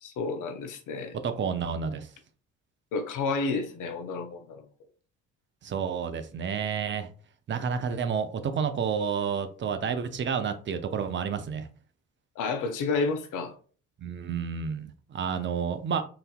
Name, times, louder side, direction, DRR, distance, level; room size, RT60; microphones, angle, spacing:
voice 1, 0.0-1.1 2.9-4.6 12.4-13.5, left 4 dB, 50° left, 7 dB, 0.8 m, -30 dB
voice 2, 1.2-2.1 5.6-7.1 7.5-11.7 14.0-16.0, right 6 dB, 30° right, 9 dB, 0.5 m, -30 dB
3.9 x 2.6 x 2.3 m, 0.41 s
hypercardioid pair, 50°, 39 cm